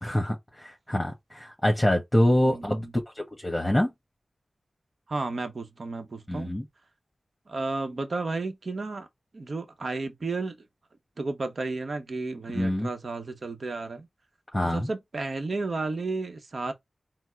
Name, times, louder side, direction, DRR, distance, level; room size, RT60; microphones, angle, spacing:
voice 1, 0.0-2.9 3.1-3.9 6.3-6.6 12.5-12.9 14.5-14.9, left 1 dB, 15° left, 1.3 m, -25 dB
voice 2, 2.4-2.9 5.1-6.5 7.5-9.1 9.3-10.6 11.2-14.1 14.6-16.7, right 3 dB, 65° right, 0.9 m, -32 dB
4.4 x 2.1 x 4.4 m
cardioid pair, 45°, 0 cm